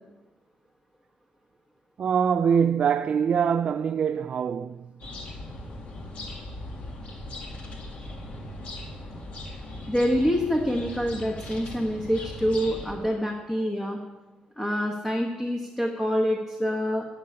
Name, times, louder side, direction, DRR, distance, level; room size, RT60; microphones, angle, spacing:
voice 1, 2.0-4.9, right 7 dB, 45° right, 0.3 m, -24 dB
sound 1, 5.0-12.9, left 1 dB, 50° left, 2.3 m, -39 dB
voice 2, 9.9-14.0 14.6-17.1, equal, 10° left, 1.2 m, -26 dB
11.5 x 7.1 x 9.7 m
cardioid pair, 160°, 3 cm